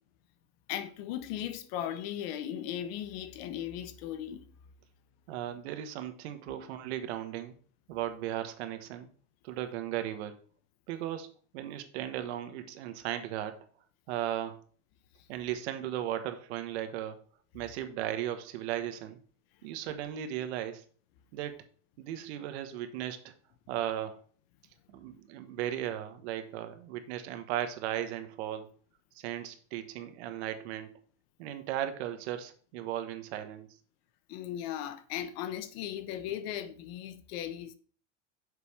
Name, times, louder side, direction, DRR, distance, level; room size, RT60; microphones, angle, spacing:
voice 1, 0.7-4.4 34.3-37.7, left 11 dB, 55° left, 1.0 m, -37 dB
voice 2, 5.3-7.6 7.9-9.1 9.4-10.4 10.9-13.6 14.1-14.6 15.3-17.2 17.5-19.2 19.6-20.8 21.3-21.6 22.0-23.3 23.7-24.2 24.9-28.7 29.1-30.9 31.4-33.7, right 11 dB, 65° right, 1.3 m, -36 dB
6.8 x 4.9 x 5.8 m
supercardioid pair, 150°, 36 cm